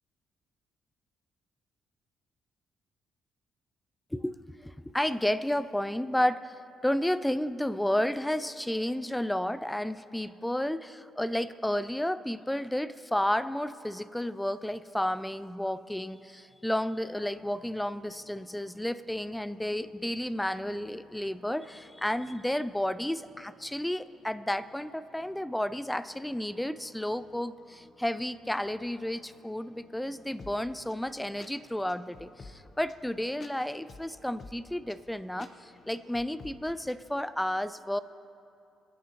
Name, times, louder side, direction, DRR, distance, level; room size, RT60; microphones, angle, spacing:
voice 1, 4.6-38.0, left 1 dB, 5° left, 15 dB, 0.4 m, -32 dB
sound 1, 17.3-37.0, left 3 dB, 45° left, 1.0 m, -56 dB
24.5 x 10.0 x 3.0 m, 2.6 s
cardioid pair, 90°, 0 cm